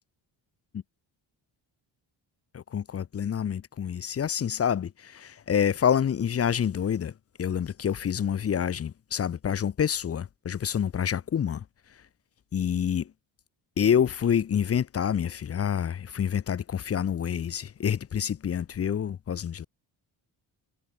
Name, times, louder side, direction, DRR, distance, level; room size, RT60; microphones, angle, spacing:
voice 1, 2.5-7.1 7.4-11.6 12.5-13.1 13.8-19.7, left 8 dB, 30° left, 0.5 m, -27 dB
supercardioid pair, 55°, 48 cm